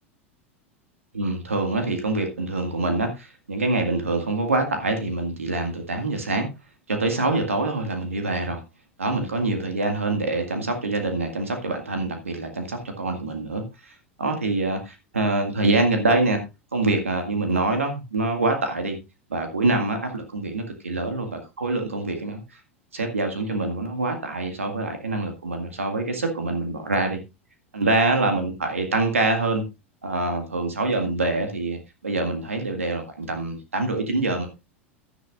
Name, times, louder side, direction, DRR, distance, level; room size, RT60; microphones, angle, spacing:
voice 1, 1.1-6.5 6.9-8.6 9.0-16.4 16.7-19.0 19.3-22.6 22.9-27.2 27.7-29.6 30.0-34.5, right 2 dB, 85° right, 5 dB, 2.0 m, -25 dB
12.0 x 10.5 x 2.5 m, 0.25 s
figure-of-eight pair, 85°, 7 cm